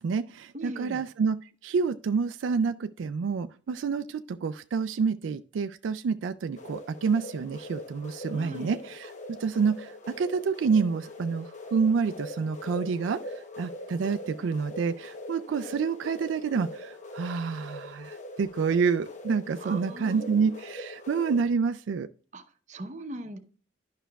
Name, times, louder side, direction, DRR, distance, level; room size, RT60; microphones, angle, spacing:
voice 1, 0.0-22.1, right 5 dB, 80° right, 0.3 m, -28 dB
voice 2, 0.5-1.0 8.3-8.8 19.6-20.5 22.3-23.4, right 1 dB, 40° right, 0.8 m, -40 dB
sound 1, 6.6-21.5, left 1 dB, 40° left, 0.9 m, -42 dB
11.0 x 5.6 x 2.3 m
head